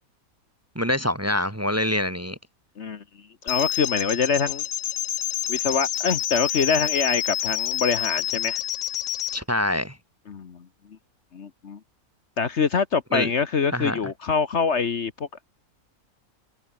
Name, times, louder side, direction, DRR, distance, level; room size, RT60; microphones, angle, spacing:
voice 1, 0.7-2.4 9.3-9.9 13.1-13.3 13.7-14.0, left 1 dB, 10° right, 1.5 m, -25 dB
voice 2, 3.4-4.6 5.5-8.6 10.3-10.7 11.3-11.8 12.4-15.4, left 5 dB, 50° left, 1.4 m, -25 dB
sound 1, 3.5-9.4, left 13 dB, 70° left, 1.0 m, -28 dB
omnidirectional pair, 1.5 m